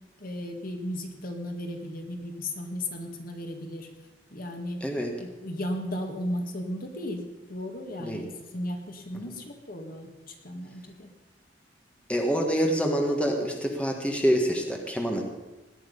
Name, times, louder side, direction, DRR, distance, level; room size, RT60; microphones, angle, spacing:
voice 1, 0.2-3.9 4.3-4.8 5.2-10.1 10.4-11.1, left 1 dB, 50° left, 4 dB, 1.9 m, -35 dB
voice 2, 4.8-5.1 8.0-8.2 12.1-15.2, equal, 5° left, 2 dB, 1.6 m, -26 dB
17.5 x 10.5 x 5.5 m, 1.1 s
head